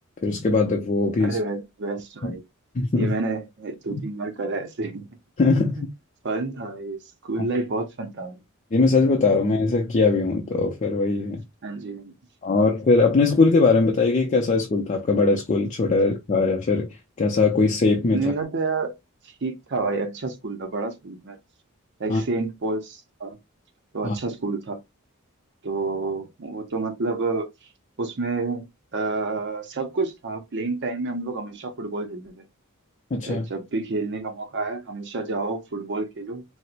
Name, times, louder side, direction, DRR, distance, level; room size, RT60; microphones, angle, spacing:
voice 1, 0.2-1.4 2.2-2.4 2.7-3.1 3.9-4.0 5.4-5.9 8.7-11.4 12.4-18.2 22.1-22.2 24.0-24.2 33.1-33.5, left 3 dB, 35° left, 0.5 m, -21 dB
voice 2, 1.2-2.4 3.0-5.1 6.2-8.4 11.6-12.1 18.1-18.9 19.4-21.4 22.0-23.4 23.9-24.8 25.6-27.5 28.0-28.6 28.9-32.4 33.3-36.4, right 3 dB, 55° right, 0.7 m, -29 dB
4.2 x 2.0 x 2.4 m
head